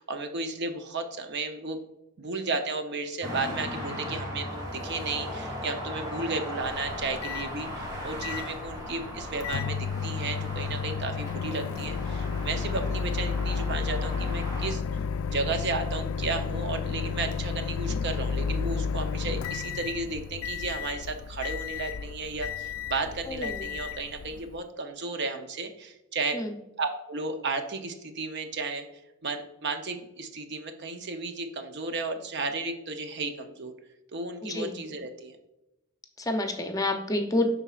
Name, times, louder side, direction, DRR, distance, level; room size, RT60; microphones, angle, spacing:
voice 1, 0.0-1.8 2.2-15.0 15.3-26.4 26.8-28.9 29.2-33.7 34.1-35.4, right 3 dB, 55° right, 6 dB, 0.7 m, -33 dB
sound 1, 3.2-14.7, left 1 dB, 20° right, 2.1 m, -38 dB
Microwave oven, 6.6-24.6, left 6 dB, 80° left, 0.3 m, -32 dB
voice 2, 23.3-23.7 26.3-26.6 34.4-34.8 36.2-37.5, left 2 dB, 15° left, 5 dB, 0.6 m, -29 dB
11.0 x 4.0 x 2.4 m, 0.93 s
head